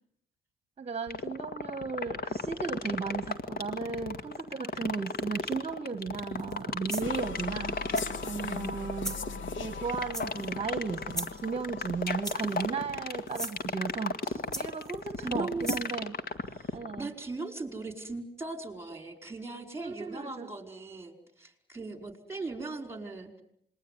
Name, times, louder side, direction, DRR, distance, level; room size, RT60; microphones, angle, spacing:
voice 1, 0.8-7.8 8.2-9.2 9.6-16.1 16.7-17.1 19.8-20.5, right 5 dB, 30° right, 11 dB, 1.5 m, -35 dB
sound 1, 1.1-17.0, left 4 dB, 50° left, 2.1 m, -33 dB
sound 2, 6.4-6.6 6.9-7.3 7.9-8.3 9.0-9.2 10.1-10.6 11.1-11.5 12.2-12.6 13.3-13.6 14.5-15.0 15.6-15.9, right 1 dB, 5° left, 2.4 m, -38 dB
sound 3, 7.0-13.2, left 4 dB, 75° left, 1.8 m, -42 dB
voice 2, 15.2-15.8 16.5-23.4, right 3 dB, 15° right, 7 dB, 5.1 m, -39 dB
27.0 x 21.5 x 9.6 m, 0.70 s
cardioid pair, 90°, 20 cm